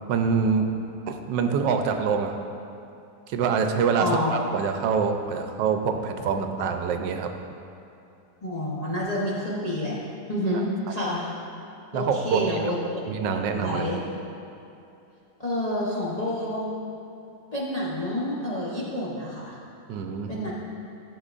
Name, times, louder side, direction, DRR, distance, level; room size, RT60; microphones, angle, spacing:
voice 1, 0.1-0.6 1.1-2.4 3.3-7.3 11.9-12.7 13.1-13.9 19.9-20.3, right 5 dB, 85° right, 5 dB, 1.3 m, -25 dB
voice 2, 4.0-4.4 8.4-10.0 10.3-11.3 11.9-12.8 13.6-14.0 15.4-16.8 17.5-19.6 20.3-20.5, left 1 dB, 35° left, -7 dB, 0.7 m, -28 dB
12.0 x 6.6 x 2.5 m, 2.8 s
omnidirectional pair, 1.9 m